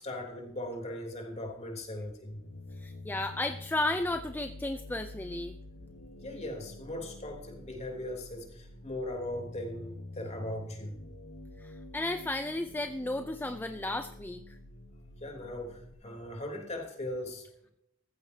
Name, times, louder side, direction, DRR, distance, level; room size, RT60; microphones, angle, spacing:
voice 1, 0.0-2.4 6.2-11.0 15.2-17.5, left 1 dB, 35° left, 2 dB, 3.4 m, -39 dB
sound 1, 2.3-15.9, left 2 dB, 85° left, 1.3 m, -48 dB
voice 2, 2.8-5.6 11.6-14.6, left 2 dB, 10° left, 8 dB, 0.5 m, -34 dB
14.5 x 14.5 x 2.8 m, 0.75 s
head